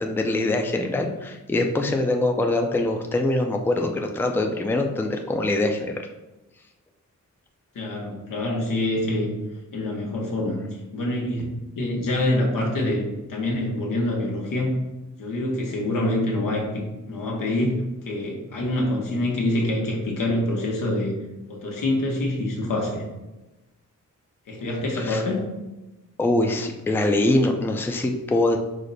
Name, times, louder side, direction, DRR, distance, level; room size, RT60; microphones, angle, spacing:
voice 1, 0.0-6.0 24.9-25.2 26.2-28.6, left 2 dB, 5° left, 4 dB, 0.4 m, -23 dB
voice 2, 7.7-9.3 9.7-10.7 10.9-11.4 11.8-14.7 15.2-21.1 21.5-23.0 24.5-25.5, left 1 dB, 85° left, -1 dB, 1.0 m, -26 dB
4.9 x 2.1 x 4.0 m, 1.0 s
cardioid pair, 80°, 32 cm